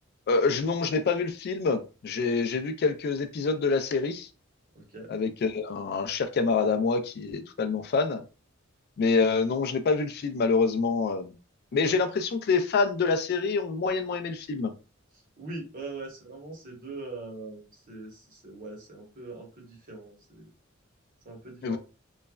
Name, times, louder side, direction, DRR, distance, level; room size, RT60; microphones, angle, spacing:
voice 1, 0.3-4.3 5.1-8.2 9.0-11.3 11.7-14.7 21.6-21.8, left 4 dB, 50° left, 8 dB, 0.3 m, -26 dB
voice 2, 4.7-5.1 15.4-20.5 21.2-21.8, right 3 dB, 45° right, 0 dB, 1.0 m, -42 dB
3.1 x 2.1 x 2.3 m, 0.32 s
head